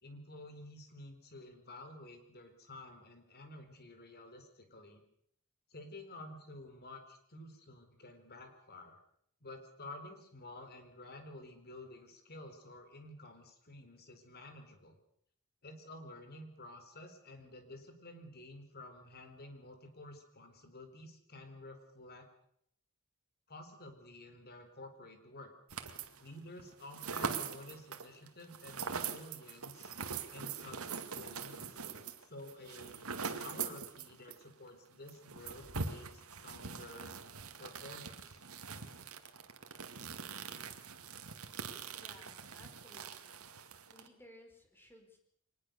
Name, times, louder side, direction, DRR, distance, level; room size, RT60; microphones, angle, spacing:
voice 1, 0.0-5.0 5.7-9.0 9.4-15.0 15.6-22.3 23.5-25.5 26.2-29.9 30.3-31.6 32.3-37.1 37.6-38.3, left 1 dB, 50° left, 7 dB, 4.3 m, -51 dB
sound 1, 25.7-26.3 26.6-34.4 34.7-34.8 35.1-44.1, right 5 dB, 80° right, 2.2 m, -43 dB
voice 2, 42.0-43.5 43.9-45.2, equal, 10° left, 3 dB, 5.2 m, -59 dB
24.0 x 20.0 x 6.9 m, 0.69 s
head